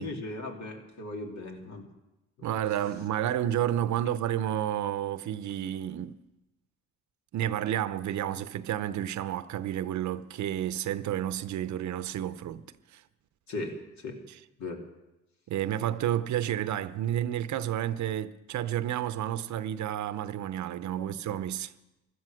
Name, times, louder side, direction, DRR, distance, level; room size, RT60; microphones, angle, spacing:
voice 1, 0.0-1.9 13.5-14.2 14.6-14.8 20.9-21.2, left 2 dB, 65° left, 2.8 m, -38 dB
voice 2, 2.4-6.2 7.3-12.6 12.9-13.0 15.5-21.7, right 11 dB, 70° right, 0.7 m, -31 dB
16.0 x 12.0 x 6.4 m
cardioid pair, 90°, 30 cm